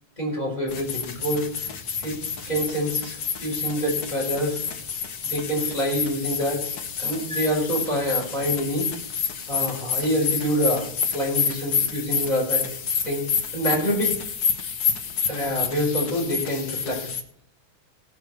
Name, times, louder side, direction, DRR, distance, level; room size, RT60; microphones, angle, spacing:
voice 1, 0.2-1.7 2.0-2.2 2.5-4.6 5.3-6.6 7.0-8.9 9.5-10.8 11.1-12.6 13.0-13.3 13.5-14.1 15.3-17.1, equal, 10° left, -3 dB, 4.7 m, -26 dB
sound 1, 0.7-17.2, left 6 dB, 65° left, 0.9 m, -29 dB
16.5 x 6.1 x 6.7 m, 0.63 s
omnidirectional pair, 3.4 m